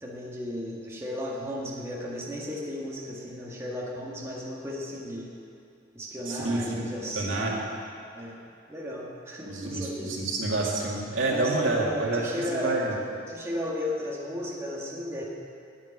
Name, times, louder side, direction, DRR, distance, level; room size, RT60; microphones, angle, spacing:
voice 1, 0.0-5.3 5.9-7.7 8.1-8.4 8.7-10.3 11.3-12.8 13.3-15.2, equal, 15° right, -4 dB, 1.6 m, -35 dB
voice 2, 6.3-6.8 7.1-7.5 9.5-12.9, right 2 dB, 75° right, -3 dB, 2.2 m, -28 dB
9.3 x 8.5 x 9.6 m, 2.7 s
head